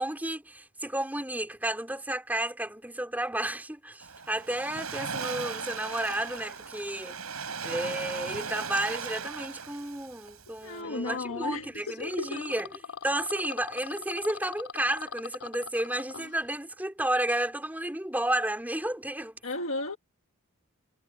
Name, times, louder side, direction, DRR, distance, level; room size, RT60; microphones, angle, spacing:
voice 1, 0.0-7.2 7.6-12.7 13.0-19.4, right 1 dB, 10° right, 3.5 m, -32 dB
Waves surf, 4.0-10.8, right 5 dB, 85° right, 5.8 m, -38 dB
voice 2, 10.6-12.6 19.4-20.0, left 2 dB, 65° left, 1.8 m, -35 dB
sound 1, 10.8-16.4, left 6 dB, 85° left, 3.1 m, -42 dB
head